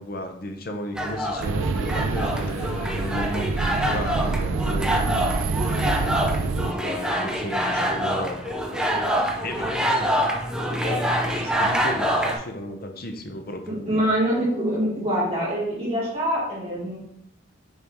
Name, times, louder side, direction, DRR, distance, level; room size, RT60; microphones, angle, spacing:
voice 1, 0.0-5.3 5.6-8.5 9.3-10.1 10.6-14.0, left 1 dB, 45° left, 4 dB, 0.8 m, -34 dB
sound 1, 0.9-12.4, equal, 5° right, 0.7 m, -26 dB
sound 2, 1.4-6.7, right 4 dB, 75° right, 0.4 m, -26 dB
voice 2, 13.9-17.0, equal, 30° right, -7 dB, 2.4 m, -24 dB
6.6 x 4.6 x 3.6 m, 0.72 s
head